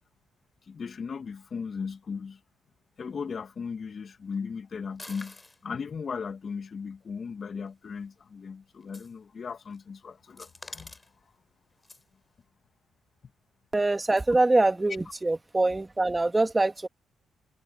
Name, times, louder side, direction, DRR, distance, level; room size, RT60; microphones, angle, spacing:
voice 1, 0.7-2.4 3.0-5.4 5.6-11.0, left 5 dB, 45° left, 2.2 m, -37 dB
sound 1, 5.0-5.6 7.4-7.5 8.8-9.1 9.5-9.8 10.4-11.1 11.8-12.0, left 2 dB, 15° left, 3.8 m, -46 dB
voice 2, 13.7-16.9, right 2 dB, 15° right, 1.8 m, -24 dB
cardioid pair, 90°, 0 cm